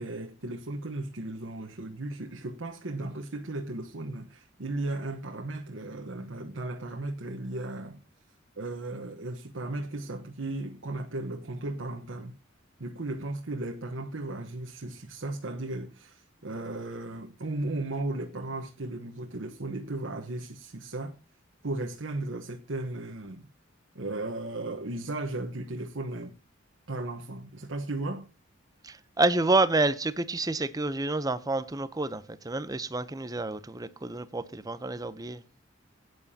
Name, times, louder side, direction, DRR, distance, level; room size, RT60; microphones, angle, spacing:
voice 1, 0.0-8.0 8.6-12.4 12.8-21.1 21.6-23.5 23.9-26.3 26.9-28.3, right 2 dB, 85° right, 1.1 m, -35 dB
voice 2, 28.8-35.4, right 2 dB, 20° right, 0.6 m, -28 dB
17.0 x 9.4 x 2.8 m
head